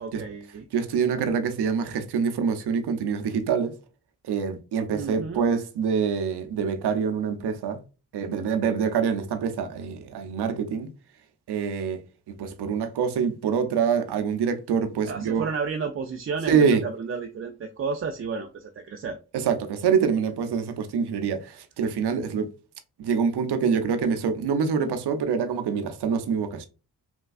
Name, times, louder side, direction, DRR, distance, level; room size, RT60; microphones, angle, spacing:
voice 1, 0.0-0.7 4.9-5.5 15.1-19.2, right 5 dB, 30° right, 0.4 m, -32 dB
voice 2, 0.7-3.7 4.2-7.8 8.1-10.9 11.5-12.0 12.4-15.4 16.5-16.8 19.5-22.5 23.0-26.7, right 6 dB, 60° right, 0.7 m, -25 dB
3.3 x 2.2 x 2.4 m
supercardioid pair, 40°, 45 cm